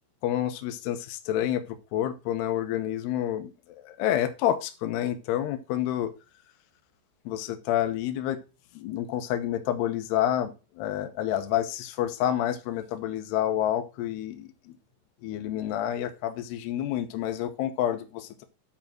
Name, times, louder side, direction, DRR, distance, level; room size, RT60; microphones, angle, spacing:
voice 1, 0.2-1.6 1.9-6.1 7.3-8.4 8.7-14.7 15.2-18.5, left 11 dB, 75° left, 7 dB, 2.7 m, -29 dB
7.5 x 5.2 x 5.9 m, 0.29 s
omnidirectional pair, 5.6 m